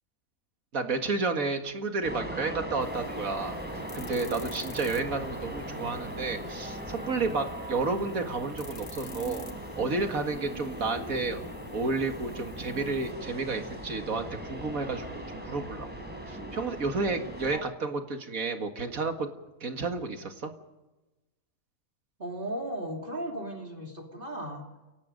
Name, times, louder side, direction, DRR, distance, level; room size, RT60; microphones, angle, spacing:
voice 1, 0.7-3.6 3.9-9.5 9.8-11.4 11.7-19.3 19.6-20.5, right 3 dB, 70° right, 6 dB, 2.3 m, -31 dB
sound 1, 2.0-17.6, right 1 dB, 5° right, 5.2 m, -39 dB
sound 2, 2.8-13.1, left 5 dB, 80° left, 2.3 m, -52 dB
voice 2, 22.2-24.6, right 1 dB, 35° right, 1 dB, 3.2 m, -36 dB
28.0 x 18.0 x 5.3 m, 1.1 s
omnidirectional pair, 1.5 m